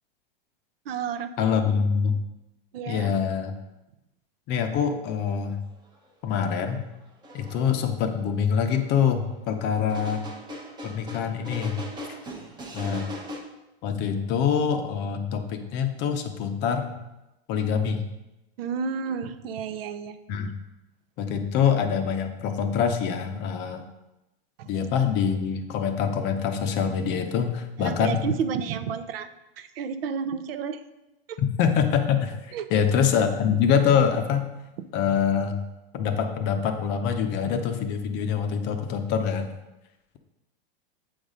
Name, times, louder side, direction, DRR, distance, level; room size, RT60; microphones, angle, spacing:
voice 1, 0.8-1.6 2.7-3.1 18.6-20.2 24.6-24.7 27.8-29.3 29.6-30.8 31.3-31.4 32.5-32.9 34.8-34.9, right 6 dB, 65° right, 11 dB, 0.7 m, -31 dB
voice 2, 1.4-2.2 2.9-3.5 4.5-5.6 6.2-6.8 7.3-10.2 10.8-11.8 12.7-13.1 13.8-16.9 17.5-18.0 20.3-20.5 21.2-23.8 24.7-28.2 31.6-34.5 34.9-35.5 35.9-39.5, left 7 dB, 35° left, 6 dB, 0.6 m, -25 dB
sound 1, 7.2-7.6 8.7-8.8 9.9-13.4, equal, 15° right, 0.8 m, -38 dB
7.9 x 4.0 x 5.0 m, 0.96 s
supercardioid pair, 140°, 31 cm